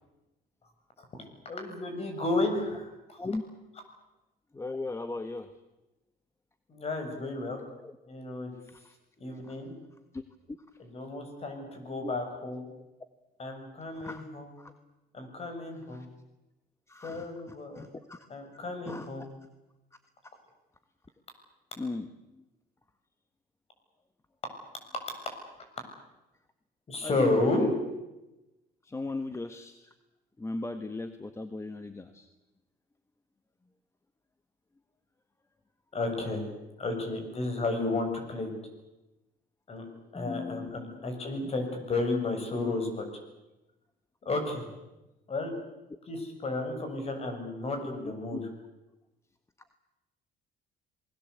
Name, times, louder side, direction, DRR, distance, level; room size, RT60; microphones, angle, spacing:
voice 1, 1.0-3.2 6.7-7.6 8.1-8.5 9.2-9.7 10.8-12.7 13.4-14.5 15.1-16.1 17.0-17.8 18.3-19.3 26.9-27.7 35.9-36.4 36.8-38.5 39.7-39.8 40.1-43.0 44.2-44.7 45.3-45.5 46.1-48.4, left 2 dB, 35° left, 5 dB, 7.6 m, -32 dB
voice 2, 4.5-5.5 7.8-7.9 8.7-9.0 9.5-9.6 10.1-10.2 10.5-10.6 12.0-12.1 13.9-14.2 14.6-14.7 15.9-16.1 16.9-17.3 17.7-18.3 18.5-19.1 21.8-22.1 27.0-27.7 28.8-29.9 30.4-32.3 40.1-41.0 47.8-48.4, left 3 dB, 15° left, 9 dB, 1.5 m, -38 dB
27.5 x 21.0 x 8.4 m, 1.0 s
cardioid pair, 110°, 17 cm